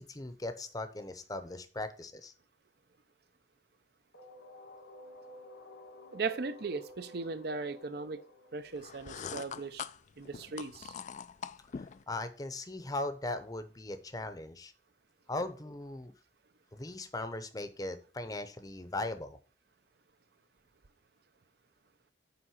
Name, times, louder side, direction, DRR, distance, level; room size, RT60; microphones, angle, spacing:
voice 1, 0.0-2.3 11.8-14.7 15.3-16.1 16.7-19.4, left 2 dB, 20° left, 0.7 m, -39 dB
sound 1, 4.1-9.9, left 1 dB, 85° left, 1.3 m, -53 dB
voice 2, 6.1-8.2 8.5-9.9 10.2-11.0, right 4 dB, 60° right, 0.6 m, -38 dB
sound 2, 8.7-12.0, left 6 dB, 40° left, 0.3 m, -43 dB
9.4 x 3.7 x 5.7 m
head